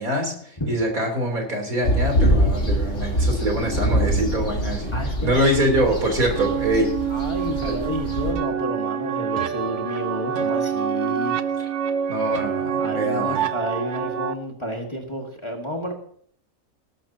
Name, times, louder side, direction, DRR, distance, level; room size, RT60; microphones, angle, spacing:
voice 1, 0.0-4.9 5.2-6.9 7.6-7.8 12.1-13.5, right 1 dB, 85° right, 2 dB, 4.0 m, -24 dB
sound 1, 1.8-8.3, equal, 60° left, 3.4 m, -24 dB
voice 2, 4.9-5.5 7.1-11.4 12.8-15.9, equal, 20° left, 1 dB, 1.8 m, -30 dB
sound 2, 6.4-14.3, right 8 dB, 60° right, 1.0 m, -26 dB
19.0 x 12.0 x 2.9 m, 0.62 s
omnidirectional pair, 1.5 m